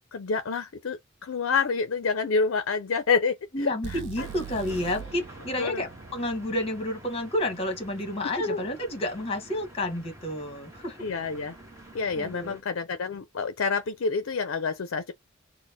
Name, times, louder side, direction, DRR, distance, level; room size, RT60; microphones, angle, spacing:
voice 1, 0.1-4.0 5.6-5.8 8.4-8.6 11.0-11.6 11.9-15.1, left 5 dB, 65° left, 0.5 m, -28 dB
voice 2, 3.5-11.1 12.1-12.6, left 1 dB, 25° left, 1.2 m, -30 dB
sound 1, 3.8-7.8, right 7 dB, 55° right, 0.4 m, -42 dB
sound 2, 4.2-12.6, right 1 dB, 15° right, 0.9 m, -48 dB
4.0 x 2.1 x 3.4 m
head